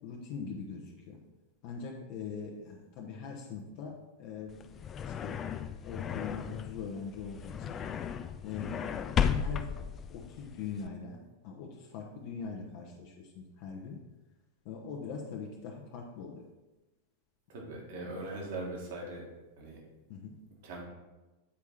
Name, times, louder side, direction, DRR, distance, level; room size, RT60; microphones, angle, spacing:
voice 1, 0.0-1.2 1.6-3.9 4.2-4.6 5.0-5.4 5.8-7.7 8.4-8.8 9.1-9.7 10.1-14.0 14.6-16.4 20.1-20.4, left 5 dB, 45° left, 1 dB, 0.9 m, -42 dB
sound 1, 4.5-10.9, left 8 dB, 25° left, 0.4 m, -35 dB
voice 2, 17.5-19.2 19.6-19.8 20.6-20.8, right 2 dB, 50° right, -1 dB, 1.9 m, -40 dB
8.5 x 4.7 x 4.3 m, 1.1 s
figure-of-eight pair, 90°, 0 cm